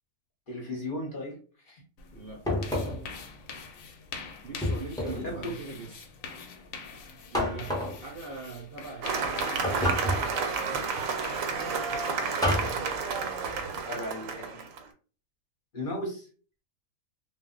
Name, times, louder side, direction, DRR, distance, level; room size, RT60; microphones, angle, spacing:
voice 1, 0.5-1.4 1.7-1.8 5.1-5.4 13.9-14.6 15.7-16.3, left 1 dB, 45° left, -1 dB, 0.9 m, -36 dB
sound 1, 2.0-12.2, left 5 dB, 80° left, 1.0 m, -45 dB
voice 2, 2.1-2.4 4.4-6.1 7.3-9.9, right 4 dB, 55° right, 0 dB, 0.7 m, -42 dB
sound 2, 2.5-3.1 4.6-5.3 7.3-8.0 9.6-10.4 12.4-12.8, left 1 dB, 5° left, 0.5 m, -29 dB
Cheering / Applause, 9.0-14.8, right 5 dB, 80° right, 1.0 m, -31 dB
2.3 x 2.0 x 3.7 m, 0.39 s
omnidirectional pair, 1.4 m